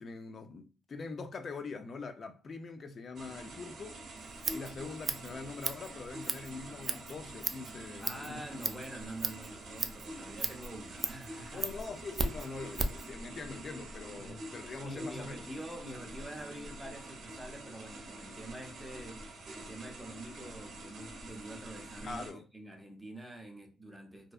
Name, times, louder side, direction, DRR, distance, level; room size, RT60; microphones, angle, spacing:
voice 1, 0.0-4.0 4.5-8.4 11.5-15.4 22.0-22.4, left 4 dB, 45° left, 0.4 m, -43 dB
sound 1, 3.2-22.3, right 1 dB, 60° right, 0.7 m, -46 dB
Scissors, 4.2-13.1, right 3 dB, 35° right, 0.3 m, -38 dB
voice 2, 8.0-11.7 14.1-24.3, right 1 dB, 5° right, 0.7 m, -46 dB
2.6 x 2.2 x 2.3 m
cardioid pair, 90°, 0 cm